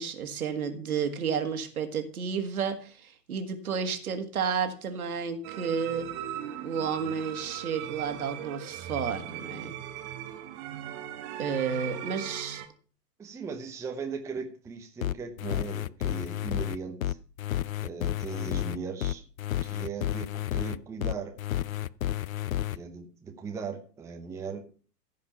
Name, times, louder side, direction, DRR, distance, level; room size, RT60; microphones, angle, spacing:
voice 1, 0.0-6.1 6.6-9.7 11.4-12.6, right 6 dB, 60° right, 7 dB, 1.9 m, -31 dB
sound 1, 5.4-12.7, right 11 dB, 25° right, 1.1 m, -39 dB
voice 2, 13.2-17.2 17.8-19.2 19.6-21.3 22.7-24.6, right 5 dB, 5° right, 3 dB, 0.8 m, -38 dB
sound 2, 15.0-22.8, left 12 dB, 60° left, 0.5 m, -31 dB
15.0 x 5.2 x 5.7 m, 0.41 s
figure-of-eight pair, 110°, 48 cm